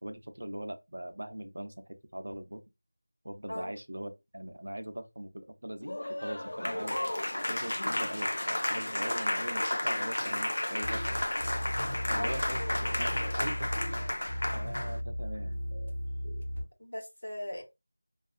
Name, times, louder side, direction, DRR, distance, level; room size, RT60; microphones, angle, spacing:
voice 1, 0.0-2.6 3.2-7.0 7.5-11.2 12.1-12.6 13.0-14.1 14.5-15.6, right 1 dB, 60° right, 0.5 m, -41 dB
Applause, 5.8-15.0, left 1 dB, 45° left, 0.3 m, -32 dB
sound 1, 10.8-16.6, equal, 10° right, 0.7 m, -36 dB
voice 2, 12.1-12.9 16.8-17.6, left 1 dB, 85° left, 1.1 m, -39 dB
2.5 x 2.4 x 2.3 m
figure-of-eight pair, 180°, 0 cm